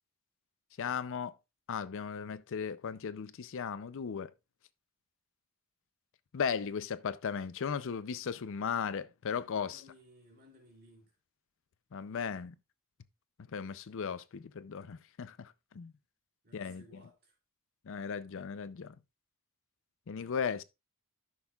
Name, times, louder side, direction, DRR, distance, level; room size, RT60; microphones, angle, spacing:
voice 1, 0.8-1.3 1.7-4.3 6.3-9.8 11.9-12.5 13.5-15.9 16.5-16.8 17.9-18.9 20.1-20.6, left 6 dB, 60° left, 0.5 m, -36 dB
voice 2, 9.6-11.1 16.4-17.4, equal, 45° right, 2.9 m, -59 dB
13.5 x 6.2 x 2.3 m
head